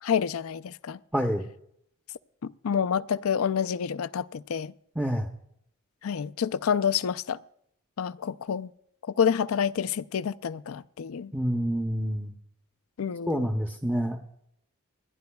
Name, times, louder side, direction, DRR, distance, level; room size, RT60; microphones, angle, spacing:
voice 1, 0.0-1.0 2.4-4.7 6.0-7.4 8.0-8.7 9.2-11.3 13.0-13.5, left 7 dB, 85° left, 0.4 m, -28 dB
voice 2, 1.1-1.5 5.0-5.3 11.3-12.3 13.3-14.2, equal, 10° right, 0.7 m, -27 dB
29.0 x 10.5 x 2.3 m
head